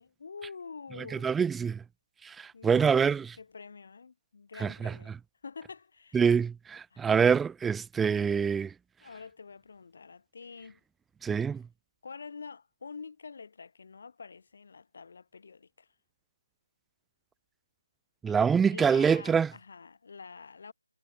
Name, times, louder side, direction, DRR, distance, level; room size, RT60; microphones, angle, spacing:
voice 1, 0.0-1.4 2.5-2.9 3.4-5.1 5.4-6.3 6.9-7.1 9.0-10.8 12.0-15.9 18.3-18.4 18.7-20.7, left 5 dB, 45° left, 5.2 m, -46 dB
voice 2, 1.2-1.8 2.2-3.3 4.6-4.9 6.1-8.7 11.2-11.6 18.2-19.5, right 6 dB, 5° right, 0.4 m, -25 dB
figure-of-eight pair, 170°, 0 cm